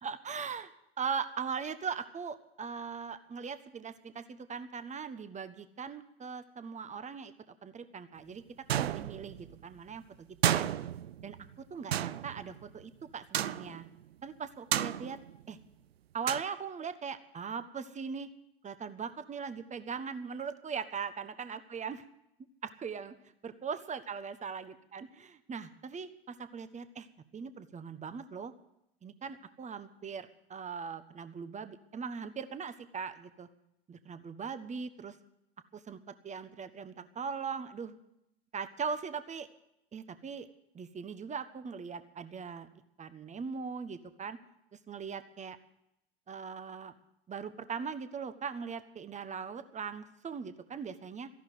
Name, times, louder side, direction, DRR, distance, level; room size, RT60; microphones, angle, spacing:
voice 1, 0.0-0.7 1.0-8.4 8.7-10.7 11.2-11.4 11.7-13.8 14.2-15.2 15.5-15.6 16.1-18.3 18.6-22.0 22.6-23.1 23.4-27.1 27.3-28.5 29.0-33.5 33.9-35.1 35.7-37.9 38.5-39.5 39.9-40.5 40.7-42.7 43.0-44.4 44.9-45.6 46.3-46.9 47.3-51.3, right 6 dB, 25° right, 11 dB, 1.3 m, -40 dB
sound 1, 8.7-9.5 10.4-11.5 11.9-12.8 13.3-13.9 14.7-15.5 16.3-16.4, right 11 dB, 85° right, 0.5 m, -32 dB
14.5 x 11.5 x 7.7 m, 0.80 s
hypercardioid pair, 80°, 30 cm